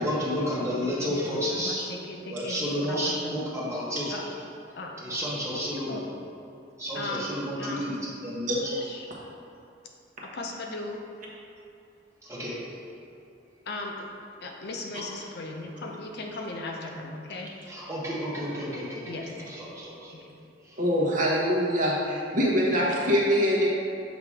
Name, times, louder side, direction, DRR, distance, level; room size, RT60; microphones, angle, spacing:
voice 1, 0.0-1.9 2.3-4.1 5.0-6.1 6.8-8.8 12.2-12.7 15.1-15.3 17.7-20.2 20.6-20.8, equal, 15° right, -7 dB, 1.3 m, -31 dB
voice 2, 1.0-3.3 4.1-4.2 4.7-4.9 5.9-6.0 6.9-7.3 7.6-7.8 8.8-9.1 10.2-11.0 13.7-14.1 14.4-17.5 19.0-19.3 20.1-20.2 22.6-22.7, left 2 dB, 60° left, 1 dB, 0.6 m, -37 dB
voice 3, 8.5-8.8 20.8-23.7, equal, 45° right, -4 dB, 1.0 m, -24 dB
7.1 x 2.9 x 4.7 m, 2.7 s
head